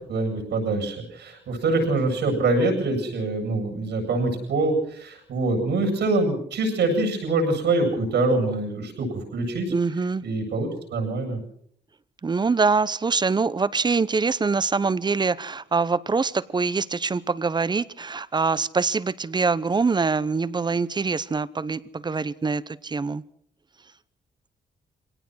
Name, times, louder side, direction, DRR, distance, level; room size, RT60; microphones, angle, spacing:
voice 1, 0.1-9.7 10.2-11.4, right 2 dB, 80° right, 4 dB, 7.9 m, -24 dB
voice 2, 9.7-10.2 12.2-23.2, right 4 dB, 25° right, 18 dB, 0.7 m, -24 dB
24.0 x 18.0 x 6.3 m, 0.66 s
cardioid pair, 125°, 17 cm